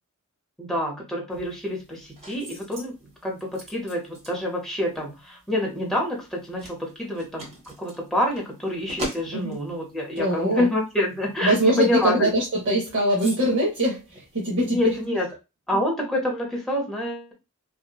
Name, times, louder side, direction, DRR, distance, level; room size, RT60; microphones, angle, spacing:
voice 1, 0.6-2.9 3.2-12.3 14.6-15.3 15.7-17.3, left 1 dB, ahead, -2 dB, 0.7 m, -27 dB
sound 1, 1.3-15.1, right 1 dB, 30° right, 1.0 m, -43 dB
voice 2, 10.2-10.7 11.4-15.0 15.7-15.8, right 1 dB, 60° right, -2 dB, 0.7 m, -23 dB
2.7 x 2.1 x 2.2 m, 0.26 s
head